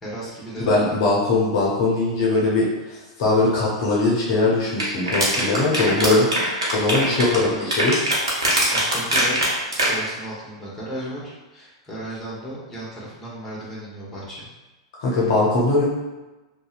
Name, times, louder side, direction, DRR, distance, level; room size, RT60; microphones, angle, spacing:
voice 1, 0.0-1.0 7.0-7.7 8.7-9.5 9.8-11.2 11.5-14.5, right 1 dB, 15° left, -8 dB, 1.1 m, -34 dB
voice 2, 0.6-8.0 15.0-15.8, left 2 dB, 55° left, -5 dB, 0.7 m, -21 dB
sound 1, 4.8-9.9, right 1 dB, 80° right, 0.8 m, -21 dB
2.6 x 2.1 x 2.4 m, 1.1 s
hypercardioid pair, 105°, 3 cm